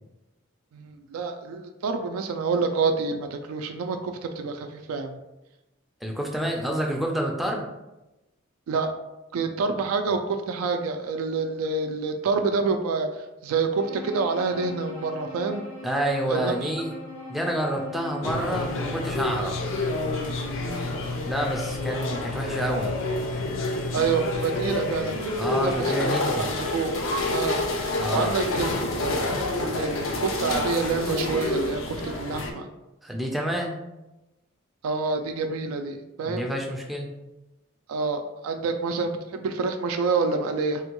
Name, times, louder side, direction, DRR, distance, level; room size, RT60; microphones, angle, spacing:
voice 1, 0.7-5.2 8.7-8.9 9.3-13.1 13.4-15.6 16.3-16.7 20.6-21.0 23.9-25.7 26.0-26.1 26.4-26.9 27.3-27.6 28.1-32.7 34.8-36.5 37.9-40.8, right 4 dB, 85° right, 6 dB, 0.3 m, -27 dB
voice 2, 6.0-7.7 15.8-16.9 17.3-19.6 21.2-22.9 25.4-26.6 28.0-28.4 33.0-33.7 36.3-37.1, equal, ahead, -1 dB, 0.3 m, -28 dB
Bowed string instrument, 13.7-19.2, left 2 dB, 80° left, 1.4 m, -40 dB
sound 1, 18.2-32.5, left 2 dB, 65° left, 0.5 m, -28 dB
3.4 x 2.2 x 2.9 m, 0.99 s
head